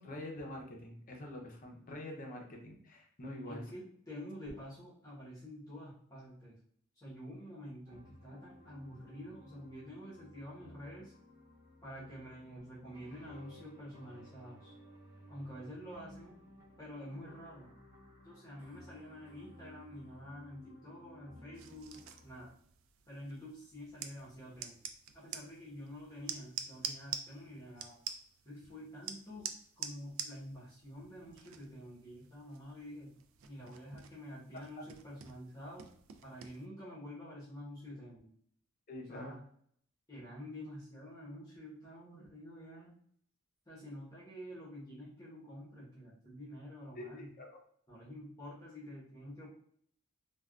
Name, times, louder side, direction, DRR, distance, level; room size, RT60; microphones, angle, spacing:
voice 1, 0.0-3.6 34.8-34.9 38.9-39.4 46.9-47.6, left 1 dB, 40° left, 0 dB, 0.7 m, -45 dB
voice 2, 3.5-6.6 7.0-11.1 11.8-14.7 15.3-16.3 16.8-17.7 18.2-22.5 23.1-24.8 25.1-28.0 28.4-29.5 29.8-33.1 33.5-35.8 36.2-38.3 39.1-39.4 40.1-42.9 43.6-47.3 47.9-49.5, equal, 20° left, -9 dB, 1.0 m, -48 dB
sound 1, 7.9-22.5, left 1 dB, 55° right, 0.8 m, -57 dB
sound 2, 21.5-36.7, right 8 dB, 70° right, 0.3 m, -47 dB
3.3 x 2.3 x 2.3 m, 0.63 s
head